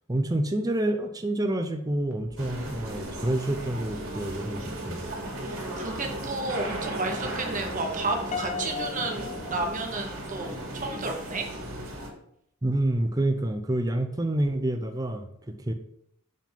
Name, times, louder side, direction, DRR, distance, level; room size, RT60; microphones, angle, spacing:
voice 1, 0.1-5.0 12.6-15.7, right 1 dB, 15° right, 6 dB, 0.5 m, -28 dB
sound 1, 2.1-9.9, left 1 dB, 85° left, 1.3 m, -52 dB
sound 2, 2.4-12.1, right 1 dB, 75° right, 2.4 m, -36 dB
voice 2, 5.4-11.5, right 2 dB, 35° right, 3 dB, 1.2 m, -32 dB
Piano, 8.3-10.6, left 6 dB, 30° left, 0.4 m, -37 dB
7.3 x 3.7 x 5.6 m, 0.72 s
head